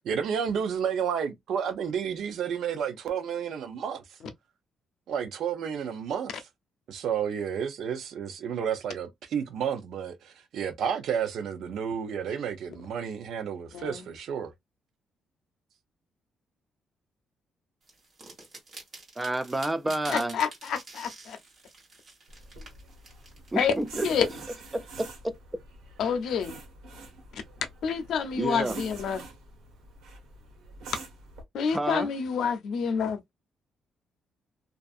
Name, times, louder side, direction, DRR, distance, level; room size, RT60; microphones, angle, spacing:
voice 1, 0.0-4.0 5.1-6.3 6.9-14.5, right 7 dB, 70° right, 0.6 m, -31 dB
voice 2, 13.7-14.1 20.1-21.4 23.6-23.7 24.0-24.3 26.0-26.6 27.3-27.4 27.8-29.2 31.5-33.2, left 7 dB, 70° left, 0.5 m, -28 dB
sound 1, 17.9-24.7, right 3 dB, 40° right, 1.5 m, -47 dB
voice 3, 19.2-20.4 23.5-24.1 24.7-25.4 28.4-28.8 31.7-32.1, right 1 dB, 10° right, 0.3 m, -29 dB
sound 2, 22.3-31.4, right 3 dB, 90° right, 1.2 m, -46 dB
2.5 x 2.4 x 2.3 m
cardioid pair, 130°, 0 cm